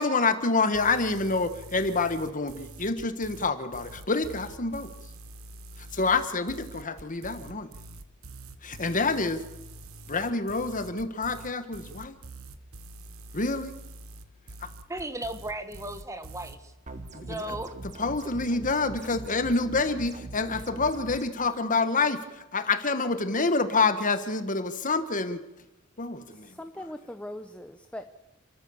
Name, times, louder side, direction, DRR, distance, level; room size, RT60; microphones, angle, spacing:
voice 1, 0.0-4.9 5.9-7.7 8.6-9.4 10.1-12.1 13.3-13.8 17.1-17.4 18.0-22.2 22.5-25.4 26.0-26.5, left 3 dB, 40° left, 10 dB, 1.4 m, -27 dB
sound 1, 0.7-16.6, right 2 dB, 70° right, 1.3 m, -45 dB
voice 2, 14.9-16.7 17.3-17.7, right 1 dB, 15° right, 9 dB, 1.4 m, -35 dB
sound 2, 16.9-21.2, right 2 dB, 35° right, 1.4 m, -42 dB
voice 3, 26.3-28.1, left 1 dB, 5° left, 8 dB, 0.8 m, -40 dB
29.5 x 14.0 x 7.1 m, 0.96 s
head